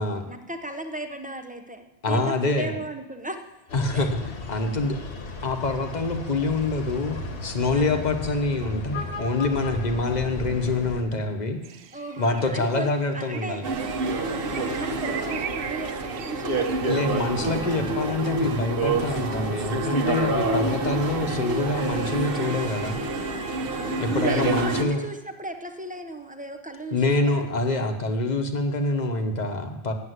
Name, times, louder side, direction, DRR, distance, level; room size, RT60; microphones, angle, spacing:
voice 1, 0.3-3.4 3.9-4.1 7.7-8.0 11.9-13.7 14.5-17.6 23.6-27.5, right 2 dB, 10° right, 6 dB, 0.5 m, -36 dB
voice 2, 2.0-2.7 3.7-4.2 4.5-5.0 5.4-11.6 12.2-13.6 16.8-23.0 24.0-25.0 26.9-29.9, left 2 dB, 40° left, 5 dB, 1.1 m, -26 dB
sound 1, 3.7-11.0, left 4 dB, 60° left, 1.4 m, -35 dB
sound 2, 11.6-17.1, right 8 dB, 65° right, 0.8 m, -40 dB
sound 3, 13.6-24.8, right 3 dB, 50° right, 1.2 m, -27 dB
8.7 x 8.0 x 8.0 m, 1.0 s
omnidirectional pair, 1.3 m